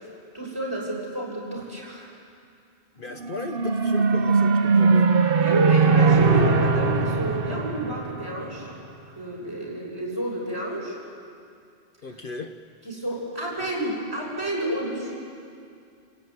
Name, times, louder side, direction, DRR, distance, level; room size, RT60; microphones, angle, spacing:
voice 1, 0.3-2.1 5.4-8.7 9.2-11.0 12.8-15.1, right 1 dB, 20° right, -4 dB, 7.2 m, -30 dB
voice 2, 3.0-5.1 12.0-12.5, left 3 dB, 55° left, 5 dB, 1.1 m, -36 dB
sound 1, 3.2-8.7, right 4 dB, 60° right, 1.1 m, -20 dB
28.5 x 17.5 x 9.5 m, 2.5 s
omnidirectional pair, 1.1 m